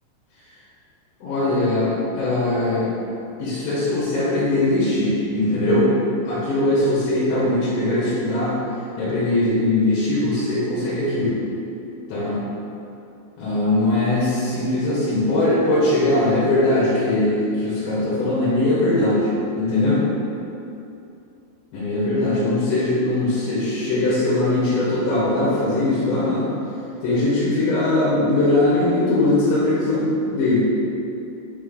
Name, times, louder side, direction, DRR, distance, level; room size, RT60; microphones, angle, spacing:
voice 1, 1.2-2.9 3.4-5.9 6.2-8.6 9.0-11.4 12.1-12.4 13.4-19.3 19.6-20.0 21.7-26.5 27.0-30.6, left 2 dB, 70° left, -9 dB, 3.1 m, -20 dB
9.0 x 3.2 x 3.7 m, 2.6 s
omnidirectional pair, 5.7 m